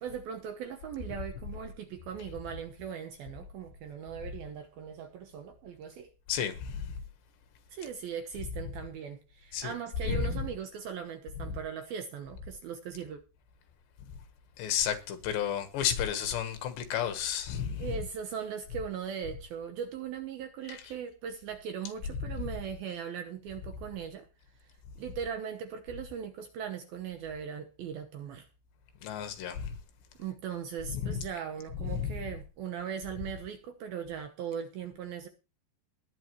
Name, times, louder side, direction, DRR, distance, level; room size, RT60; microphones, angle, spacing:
voice 1, 0.0-6.1 7.7-13.2 17.8-24.3 25.0-28.5 30.2-35.3, right 7 dB, 70° right, 2.4 m, -39 dB
voice 2, 6.3-7.0 9.5-9.7 10.0-10.5 11.5-11.6 14.6-18.0 20.7-20.8 29.0-29.7 30.9-31.3 31.8-32.2, left 8 dB, 75° left, 3.5 m, -32 dB
20.5 x 9.4 x 3.1 m
omnidirectional pair, 5.3 m